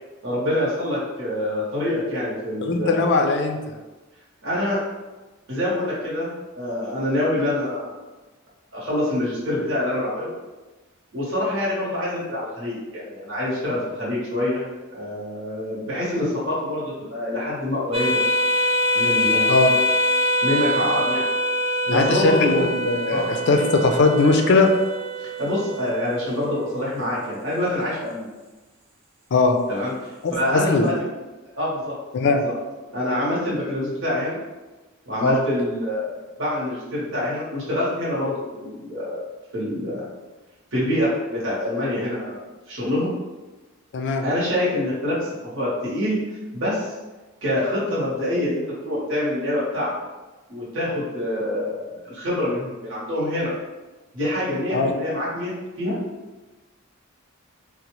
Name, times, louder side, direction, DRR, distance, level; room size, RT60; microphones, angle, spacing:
voice 1, 0.2-3.0 4.4-4.8 5.5-8.0 8.7-10.3 11.1-14.6 14.9-18.2 18.9-19.7 20.4-21.3 21.8-22.7 23.1-23.3 25.2-28.3 29.7-30.9 31.5-31.9 32.4-32.5 32.9-34.4 35.1-36.1 36.4-39.2 39.5-40.0 40.7-42.4 42.7-43.1 44.2-46.9 47.4-49.9 50.5-53.5 54.1-55.5 55.8-56.0, left 1 dB, 65° right, -7 dB, 0.9 m, -26 dB
voice 2, 2.6-3.6 19.5-19.7 21.9-24.7 29.3-29.6 30.2-30.8 32.1-32.4 35.2-35.4 43.9-44.2 54.7-54.9, left 3 dB, 55° left, 5 dB, 0.4 m, -19 dB
sound 1, 17.9-26.9, equal, 30° right, 0.4 m, -24 dB
3.9 x 2.1 x 2.9 m, 1.2 s
head